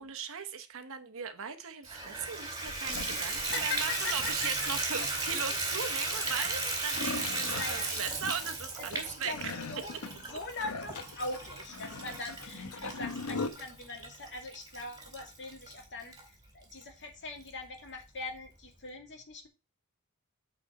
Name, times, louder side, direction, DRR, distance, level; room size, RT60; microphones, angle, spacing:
voice 1, 0.0-9.5, right 7 dB, 65° right, 1.0 m, -38 dB
Water tap faucet / Bathtub (filling or washing), 1.8-16.2 16.8-16.9 17.4-17.5 17.8-17.9, right 3 dB, 15° right, 2.3 m, -36 dB
sound 1, 2.7-5.5 6.1-13.5, left 3 dB, 75° left, 0.9 m, -41 dB
voice 2, 3.1-4.7 5.3-5.6 7.6-7.9 8.8-9.4 9.7-9.9 10.2-19.5, left 3 dB, 55° left, 2.2 m, -41 dB
8.6 x 4.3 x 5.3 m
head